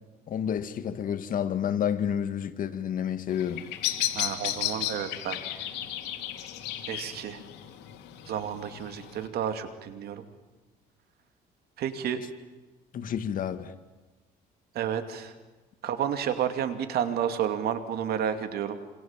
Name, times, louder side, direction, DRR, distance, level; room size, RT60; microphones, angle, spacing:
voice 1, 0.3-3.7 12.9-13.7, left 9 dB, 55° left, 1.9 m, -30 dB
Bird vocalization bird call bird song, 3.3-9.3, left 12 dB, 90° left, 2.7 m, -34 dB
voice 2, 4.1-5.4 6.9-7.4 8.3-10.2 11.8-12.2 14.7-15.3 15.8-18.8, right 9 dB, 70° right, 2.5 m, -31 dB
27.0 x 26.5 x 7.4 m
cardioid pair, 110°, 17 cm